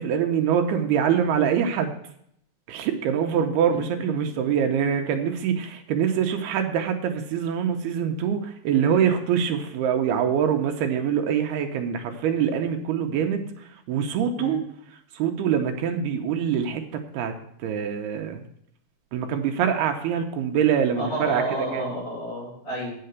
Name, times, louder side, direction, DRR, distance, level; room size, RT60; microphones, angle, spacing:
voice 1, 0.0-1.9 2.7-14.6 15.1-17.3 17.6-18.4 19.1-21.4 21.7-21.8, right 8 dB, 75° right, 5 dB, 2.4 m, -24 dB
voice 2, 21.0-23.0, right 1 dB, 30° left, -4 dB, 6.4 m, -31 dB
8.6 x 6.7 x 7.9 m, 0.71 s
omnidirectional pair, 5.1 m